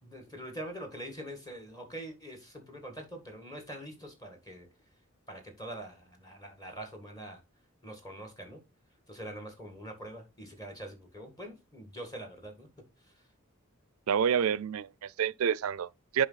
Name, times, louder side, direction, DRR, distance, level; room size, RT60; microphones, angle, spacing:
voice 1, 0.0-4.7 5.3-7.4 7.8-8.6 9.1-12.7 13.0-13.3, right 1 dB, 20° left, 1.9 m, -44 dB
voice 2, 14.1-16.3, right 7 dB, 85° right, 0.4 m, -28 dB
10.5 x 3.8 x 4.0 m
head